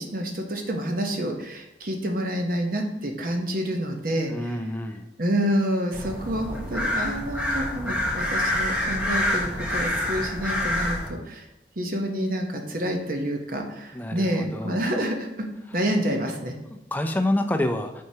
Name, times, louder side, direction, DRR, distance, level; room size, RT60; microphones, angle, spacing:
voice 1, 0.1-4.3 5.2-11.5 11.8-15.5 15.7-16.5, equal, 50° right, 3 dB, 0.9 m, -28 dB
voice 2, 4.3-5.1 13.9-14.8 15.7-15.8 16.7-18.0, left 1 dB, 10° left, 6 dB, 0.4 m, -28 dB
sound 1, 5.9-11.1, left 1 dB, 5° right, 0.9 m, -27 dB
7.8 x 4.6 x 2.8 m, 0.89 s
head